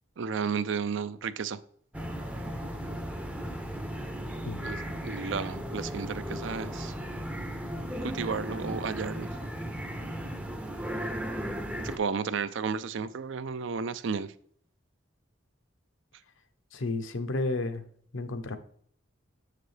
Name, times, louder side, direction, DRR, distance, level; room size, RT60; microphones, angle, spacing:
voice 1, 0.2-1.6 4.6-6.9 8.0-9.3 11.8-14.3, right 5 dB, 70° right, 0.4 m, -33 dB
sound 1, 1.9-12.0, equal, 5° right, 0.5 m, -36 dB
voice 2, 16.7-17.8 18.1-18.6, left 2 dB, 80° left, 0.8 m, -31 dB
6.6 x 6.6 x 3.3 m
head